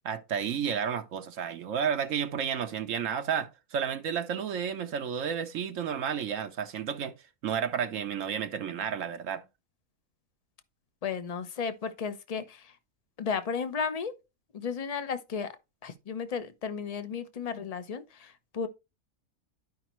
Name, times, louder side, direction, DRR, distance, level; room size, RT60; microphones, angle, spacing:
voice 1, 0.0-7.1 7.4-9.4, right 7 dB, 70° right, 1.1 m, -31 dB
voice 2, 11.0-12.8 13.2-14.2 14.5-15.5 15.8-18.7, left 6 dB, 35° left, 0.7 m, -34 dB
12.0 x 5.0 x 3.0 m
omnidirectional pair, 1.5 m